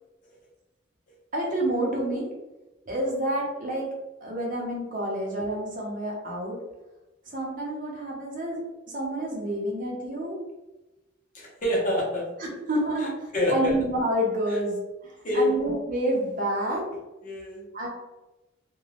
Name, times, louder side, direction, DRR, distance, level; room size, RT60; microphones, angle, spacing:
voice 1, 1.3-2.3 2.9-3.9 4.2-6.6 7.3-8.6 8.9-10.4 12.4-14.8 15.3-16.9 17.7-17.9, right 1 dB, 45° right, -2 dB, 0.7 m, -28 dB
voice 2, 11.3-12.3 13.0-13.7 14.5-14.6 15.2-15.5 17.2-17.6, left 1 dB, 45° left, -4 dB, 0.8 m, -26 dB
2.4 x 2.2 x 3.2 m, 1.0 s
head